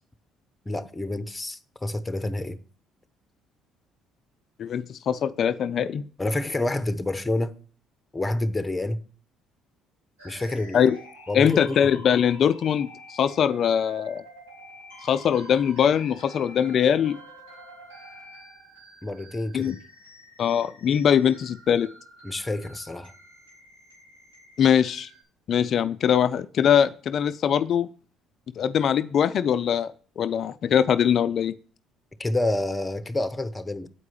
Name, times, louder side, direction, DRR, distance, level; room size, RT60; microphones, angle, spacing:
voice 1, 0.7-2.6 6.2-7.5 8.1-9.0 10.2-10.8 11.3-11.9 19.0-19.7 22.2-23.1 32.2-33.9, left 2 dB, 15° left, 0.8 m, -28 dB
voice 2, 4.6-6.0 10.7-11.0 11.3-14.2 15.0-17.2 19.5-19.8 20.4-21.9 24.6-25.1 25.5-27.9 28.6-31.5, left 8 dB, 55° left, 0.3 m, -22 dB
sound 1, 10.2-25.2, equal, 85° right, 4.0 m, -48 dB
8.4 x 4.7 x 7.2 m
hypercardioid pair, 55°, 0 cm